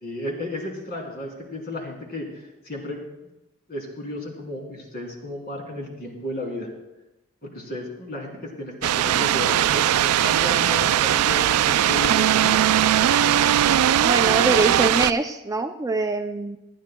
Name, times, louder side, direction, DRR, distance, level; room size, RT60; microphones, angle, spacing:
voice 1, 0.0-3.0 3.7-6.7 7.4-12.5 14.3-14.5, left 1 dB, 45° left, -1 dB, 2.9 m, -33 dB
sound 1, 8.8-15.1, right 11 dB, 90° right, 0.3 m, -19 dB
voice 2, 13.9-16.6, right 3 dB, 15° right, 6 dB, 0.4 m, -24 dB
27.0 x 10.0 x 2.2 m, 0.97 s
head